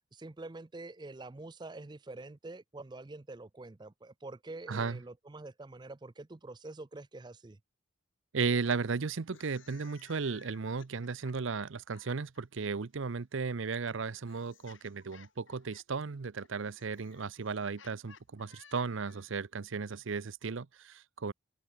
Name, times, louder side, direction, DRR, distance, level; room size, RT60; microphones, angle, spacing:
voice 1, 0.1-7.6, right 2 dB, 20° right, 0.4 m, -46 dB
voice 2, 4.7-5.0 8.3-21.3, right 5 dB, 65° right, 0.6 m, -35 dB
sound 1, 9.2-12.4 13.5-19.4, left 6 dB, 65° left, 6.0 m, -60 dB
open air
head